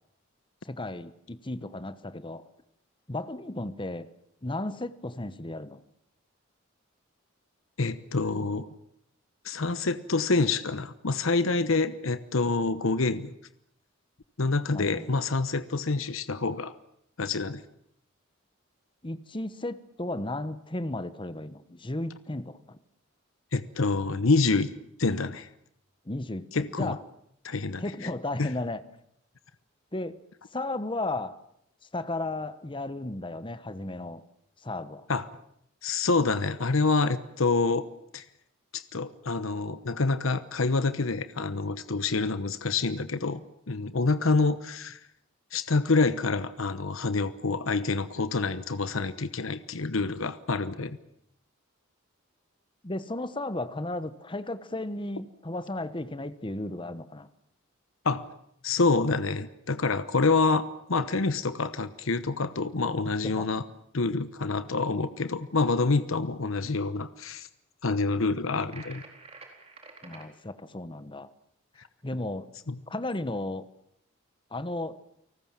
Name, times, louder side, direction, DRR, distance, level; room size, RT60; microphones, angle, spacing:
voice 1, 0.6-2.5 3.1-4.1 4.4-5.8 14.7-15.1 19.0-22.8 26.0-27.0 27.8-28.8 29.9-30.2 30.5-31.4 31.9-34.2 34.6-35.1 52.8-57.3 63.0-63.5 70.0-71.3 72.0-72.5 72.9-73.7 74.5-75.0, left 2 dB, 25° left, 13 dB, 1.2 m, -34 dB
voice 2, 7.8-8.7 9.4-13.3 14.4-16.7 17.2-17.6 23.5-24.7 25.0-25.5 26.5-27.0 27.4-27.8 28.4-28.5 35.1-35.2 35.8-37.9 38.1-38.2 38.7-43.4 43.7-45.0 45.5-51.0 58.0-58.3 58.6-63.6 63.9-67.5 67.8-69.0 72.7-72.8, left 3 dB, 75° left, 13 dB, 1.0 m, -27 dB
sound 1, 68.7-70.3, right 3 dB, 30° right, 4.1 m, -48 dB
30.0 x 19.0 x 7.4 m, 0.74 s
head